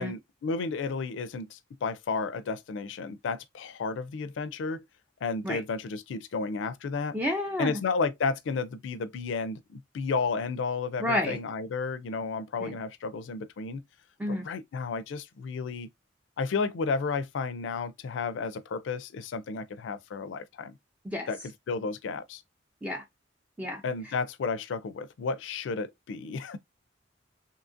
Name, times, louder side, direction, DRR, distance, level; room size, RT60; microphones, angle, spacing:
voice 1, 0.0-4.8 5.2-7.2 7.6-13.8 14.3-15.9 16.4-20.8 21.3-21.4 21.7-22.4 23.8-26.6, left 4 dB, 80° left, 0.4 m, -32 dB
voice 2, 7.1-7.8 11.0-11.4 12.6-12.8 14.2-14.5 21.0-21.3 22.8-23.0 23.6-23.8, left 1 dB, 10° right, 0.4 m, -30 dB
2.8 x 2.4 x 2.5 m
head